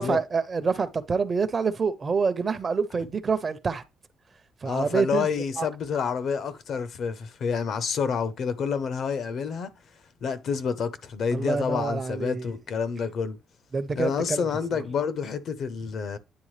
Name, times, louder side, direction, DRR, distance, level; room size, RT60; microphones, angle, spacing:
voice 1, 0.0-3.8 4.6-5.7 11.3-12.4 13.7-14.4, right 5 dB, 40° right, 0.7 m, -27 dB
voice 2, 4.6-9.7 10.2-13.4 13.9-16.2, left 6 dB, 65° left, 0.8 m, -28 dB
9.7 x 3.5 x 3.2 m
cardioid pair, 90°, 0 cm